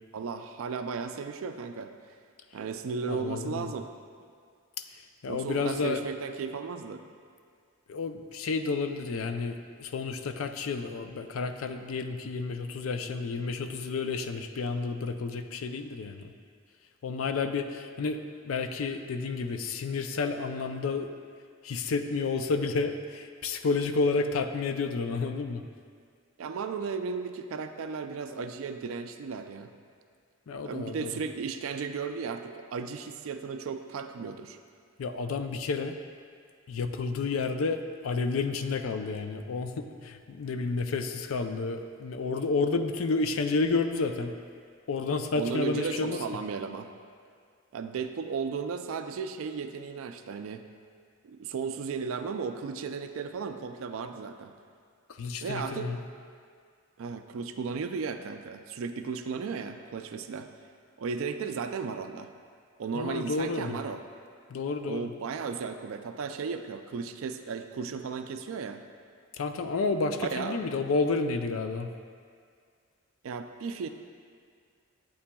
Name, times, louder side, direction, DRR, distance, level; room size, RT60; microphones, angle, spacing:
voice 1, 0.1-1.9 2.5-3.9 5.3-7.0 26.4-29.7 30.6-34.6 45.4-46.9 47.7-50.6 51.2-54.5 55.4-55.9 57.0-60.5 61.0-62.3 62.8-64.0 64.8-68.8 70.2-70.6 73.2-73.9, right 5 dB, 80° right, 7 dB, 0.4 m, -35 dB
voice 2, 3.1-3.7 4.9-6.1 7.9-16.3 17.0-18.2 18.4-21.1 21.6-25.6 30.5-31.2 35.0-36.0 36.7-44.3 44.9-46.2 55.1-56.0 62.9-63.8 64.5-65.1 69.4-71.9, left 4 dB, 85° left, 8 dB, 0.4 m, -30 dB
8.5 x 8.3 x 2.3 m, 2.1 s
head